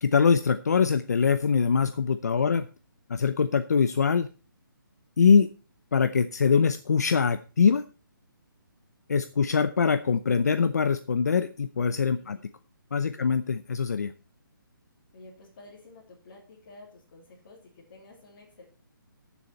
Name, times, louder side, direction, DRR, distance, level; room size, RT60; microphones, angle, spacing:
voice 1, 0.0-2.7 3.1-4.3 5.2-5.5 5.9-7.8 9.1-12.4 12.9-14.1, left 6 dB, 50° left, 11 dB, 0.6 m, -23 dB
voice 2, 2.3-2.7 12.2-12.4 13.1-13.3 15.1-18.6, left 3 dB, 30° left, -6 dB, 2.8 m, -51 dB
13.5 x 7.1 x 4.4 m, 0.36 s
hypercardioid pair, 180°, 12 cm